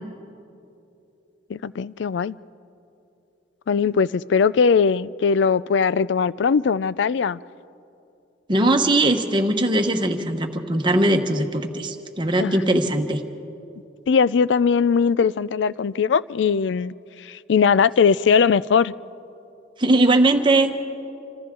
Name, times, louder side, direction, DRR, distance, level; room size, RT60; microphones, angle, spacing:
voice 1, 1.5-2.4 3.7-7.4 12.4-12.6 14.1-16.9 17.2-18.9, left 6 dB, 70° left, 0.4 m, -20 dB
voice 2, 8.5-13.2 19.8-20.7, right 1 dB, 25° right, 1.2 m, -20 dB
28.0 x 25.5 x 3.8 m
head